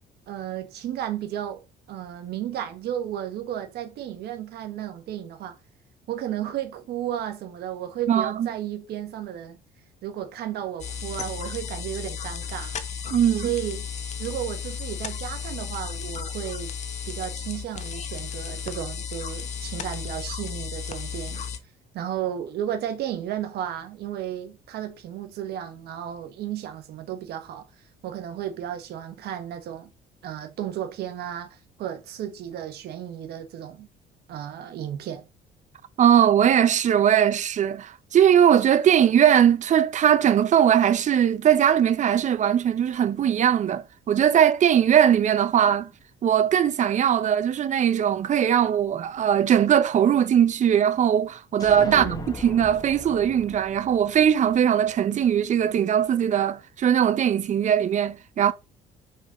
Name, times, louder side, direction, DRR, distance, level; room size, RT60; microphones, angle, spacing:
voice 1, 0.3-5.6 6.1-9.6 10.0-12.8 13.4-13.9 14.2-16.7 17.1-21.4 21.9-27.7 28.0-29.9 30.2-33.9 34.3-35.3 51.8-52.3, right 11 dB, 70° right, 1.4 m, -33 dB
voice 2, 8.1-8.5 13.1-13.5 36.0-45.9 46.2-58.5, right 9 dB, 45° right, 0.8 m, -20 dB
sound 1, 10.8-21.6, left 6 dB, 45° left, 1.1 m, -34 dB
sound 2, 51.6-55.3, left 3 dB, 20° left, 1.5 m, -39 dB
6.0 x 4.2 x 5.1 m
cardioid pair, 110°, 17 cm